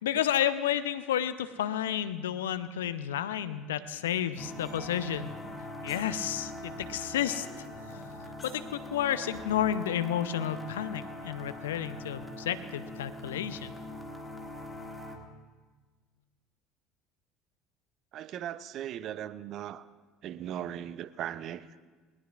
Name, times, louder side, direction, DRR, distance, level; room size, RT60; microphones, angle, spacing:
voice 1, 0.0-5.4 5.8-7.5 8.4-13.7, left 10 dB, 75° left, 13 dB, 0.6 m, -31 dB
sound 1, 4.4-15.2, left 1 dB, 5° left, 2.2 m, -42 dB
sound 2, 4.6-6.6 6.8-9.6, left 1 dB, 25° left, 5.3 m, -51 dB
voice 2, 18.1-19.9 20.2-21.7, right 11 dB, 50° right, 16 dB, 0.6 m, -38 dB
20.0 x 19.5 x 2.4 m, 1.4 s
figure-of-eight pair, 65°, 0 cm